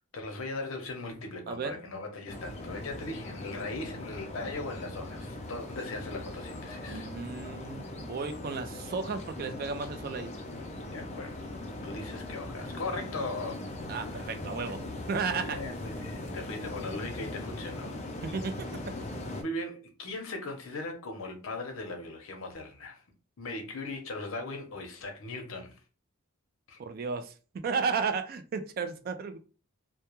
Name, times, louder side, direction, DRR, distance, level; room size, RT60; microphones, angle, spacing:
voice 1, 0.1-7.1 10.8-11.5 11.8-13.6 14.0-14.3 15.3-18.1 19.4-23.0 23.4-25.8 26.7-26.8, left 2 dB, 75° left, 0.7 m, -39 dB
sound 1, 2.3-19.4, left 2 dB, 30° left, 0.4 m, -40 dB
voice 2, 6.9-10.4 13.9-15.6 18.2-19.0 26.8-29.4, right 5 dB, 45° right, 0.3 m, -34 dB
2.2 x 2.1 x 2.9 m
head